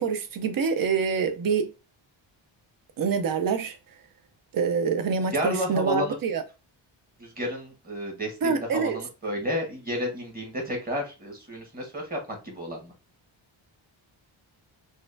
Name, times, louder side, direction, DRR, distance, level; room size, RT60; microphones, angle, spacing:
voice 1, 0.0-1.7 3.0-3.8 4.5-6.4 8.4-9.0, right 5 dB, 45° right, 0.6 m, -26 dB
voice 2, 5.3-6.2 7.2-12.9, equal, 20° right, 1.3 m, -31 dB
4.0 x 2.5 x 2.5 m
wide cardioid pair, 150°, 48 cm